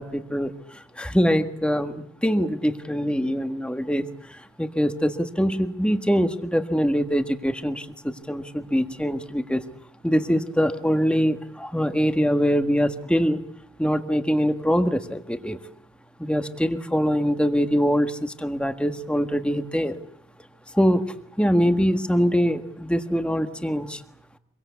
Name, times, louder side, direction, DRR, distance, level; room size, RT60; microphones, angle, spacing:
voice 1, 0.0-9.6 10.0-13.4 13.8-15.6 16.2-20.0 20.7-21.0 21.4-24.0, equal, 5° left, 8 dB, 1.6 m, -23 dB
26.0 x 23.0 x 8.3 m, 0.69 s
head